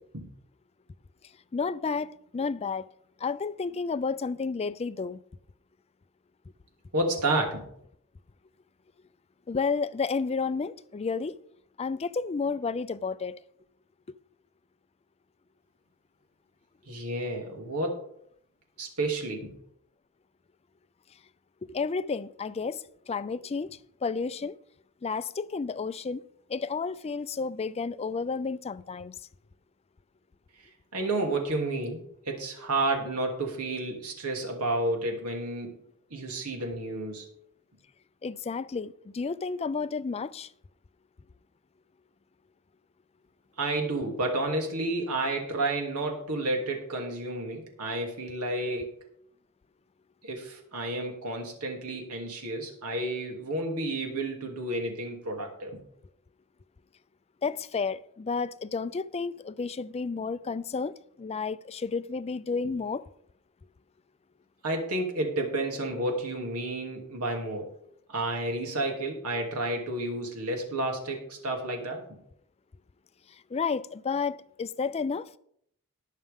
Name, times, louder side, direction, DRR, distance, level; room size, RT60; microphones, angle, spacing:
voice 1, 1.5-2.9 3.2-5.2 9.5-11.4 11.8-13.4 21.7-23.7 24.0-24.6 25.0-26.2 26.5-29.1 38.2-40.5 57.4-63.0 73.5-75.4, left 4 dB, 30° left, 0.4 m, -31 dB
voice 2, 6.9-7.6 16.9-18.0 18.8-19.5 30.9-35.7 36.1-37.3 43.6-48.9 50.2-55.8 64.6-67.7 68.1-72.0, right 2 dB, 85° right, 2.7 m, -31 dB
18.5 x 6.6 x 3.6 m
head